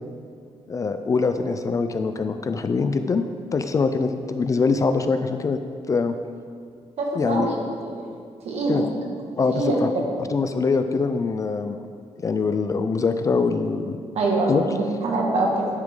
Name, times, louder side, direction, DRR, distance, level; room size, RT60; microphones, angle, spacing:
voice 1, 0.7-3.3 3.5-5.6 5.9-6.1 7.2-7.5 8.7-8.9 9.4-9.9 10.3-11.8 12.2-14.0 14.5-14.6, left 4 dB, 30° left, 8 dB, 0.4 m, -23 dB
voice 2, 7.0-7.5 7.8-7.9 8.5-8.8 9.5-9.8 14.2-15.7, right 2 dB, 65° right, -1 dB, 1.9 m, -24 dB
10.5 x 9.5 x 3.8 m, 2.2 s
wide cardioid pair, 180°, 12 cm